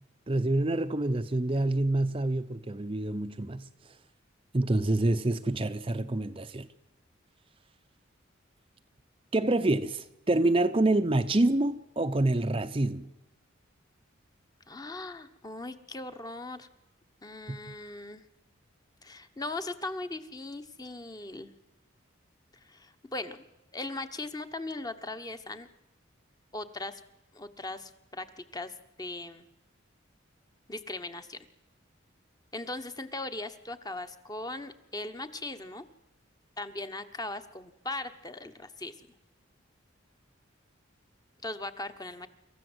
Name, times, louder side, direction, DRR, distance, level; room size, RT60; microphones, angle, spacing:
voice 1, 0.3-3.7 4.5-6.7 9.3-13.1 17.5-17.6, right 2 dB, 25° right, 0.6 m, -27 dB
voice 2, 14.7-16.7 17.2-18.2 19.0-21.5 22.5-23.4 23.7-25.7 26.5-27.0 27.3-29.5 30.7-31.4 32.5-35.8 36.6-38.9 41.4-42.3, left 2 dB, 20° left, 1.1 m, -39 dB
26.0 x 14.5 x 8.0 m
head